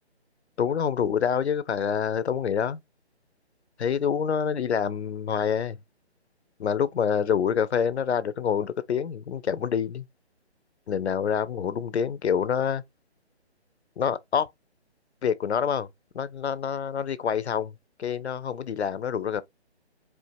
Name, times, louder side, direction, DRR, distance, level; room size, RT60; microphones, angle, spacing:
voice 1, 0.6-2.8 3.8-5.8 6.6-10.0 10.9-12.8 14.0-14.5 15.2-15.9 16.1-17.7 18.0-19.4, left 7 dB, 75° left, 0.6 m, -26 dB
4.5 x 2.4 x 2.6 m
figure-of-eight pair, 145°, 33 cm